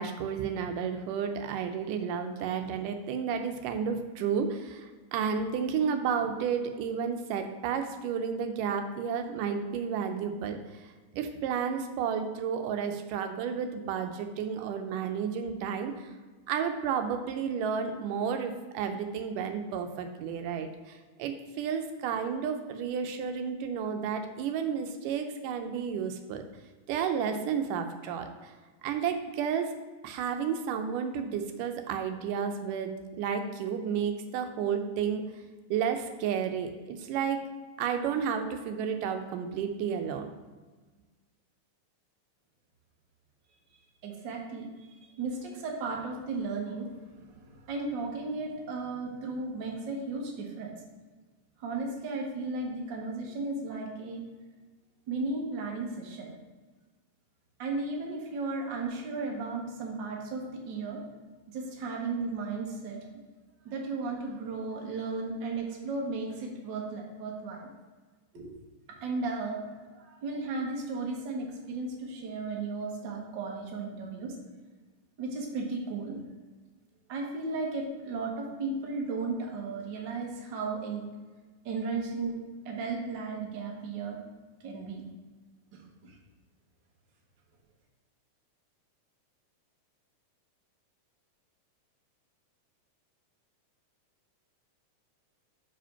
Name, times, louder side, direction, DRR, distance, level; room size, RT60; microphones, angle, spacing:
voice 1, 0.0-10.6 11.1-16.1 16.5-26.5 26.9-28.5 28.8-29.7 30.0-35.2 35.7-37.4 37.8-40.3, right 7 dB, 85° right, 6 dB, 2.2 m, -32 dB
voice 2, 44.0-46.9 47.2-50.7 51.6-54.2 55.1-56.3 57.6-61.0 61.5-63.0 63.6-67.7 68.3-68.5 69.0-69.6 69.9-74.3 75.2-76.2 77.1-81.0 81.6-82.4 82.6-84.2 84.6-85.1 85.7-86.1, right 3 dB, 65° right, -1 dB, 1.1 m, -35 dB
5.0 x 5.0 x 5.6 m, 1.3 s
omnidirectional pair, 3.7 m